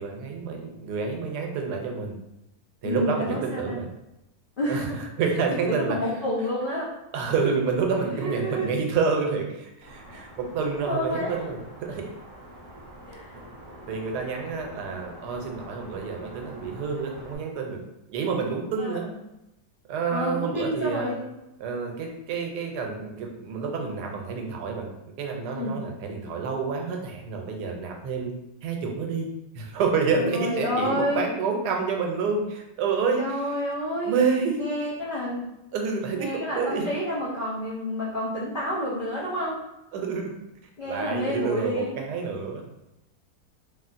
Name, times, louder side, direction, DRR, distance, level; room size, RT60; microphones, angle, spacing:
voice 1, 0.0-2.2 2.8-3.9 4.7-6.0 7.1-12.1 13.9-17.8 18.1-19.1 19.9-21.2 21.6-28.3 28.6-29.3 29.5-33.4 34.0-34.7 35.7-36.9 39.9-40.3 40.8-42.6, right 5 dB, 80° right, 2 dB, 1.1 m, -28 dB
voice 2, 2.8-3.8 4.6-5.0 5.5-6.9 8.1-8.7 10.9-11.5 13.0-13.3 18.8-19.1 20.1-21.3 25.5-25.8 30.1-31.3 33.2-34.2 34.6-35.5 36.1-39.6 40.8-42.0, equal, 75° left, -7 dB, 0.4 m, -29 dB
sound 1, 9.8-17.4, equal, 25° right, 0.5 m, -46 dB
3.3 x 2.3 x 2.5 m, 0.90 s
omnidirectional pair, 1.7 m